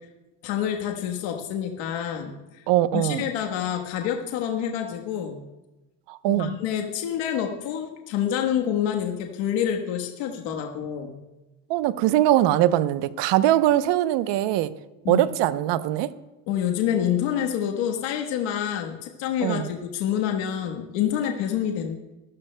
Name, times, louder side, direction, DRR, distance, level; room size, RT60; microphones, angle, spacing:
voice 1, 0.4-2.6 2.9-5.4 6.3-11.2 15.0-15.2 16.5-22.0, left 9 dB, 75° left, 1.4 m, -27 dB
voice 2, 2.7-3.2 6.1-6.6 11.7-14.7 15.1-16.1 19.4-19.7, right 13 dB, 65° right, 0.9 m, -21 dB
24.0 x 13.5 x 2.2 m
supercardioid pair, 90°, 46 cm